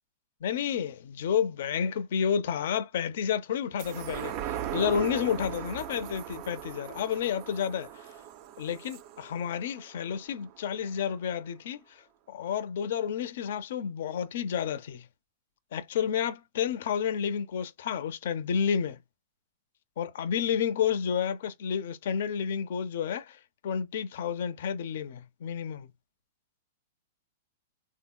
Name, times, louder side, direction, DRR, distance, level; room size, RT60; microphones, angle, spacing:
voice 1, 0.4-7.9 8.6-11.8 12.3-15.1 15.7-19.0 20.0-25.9, left 8 dB, 65° left, 0.5 m, -30 dB
sound 1, 3.8-10.6 11.0-11.1, right 10 dB, 45° right, 0.4 m, -39 dB
3.5 x 2.7 x 2.2 m
hypercardioid pair, 115°, 0 cm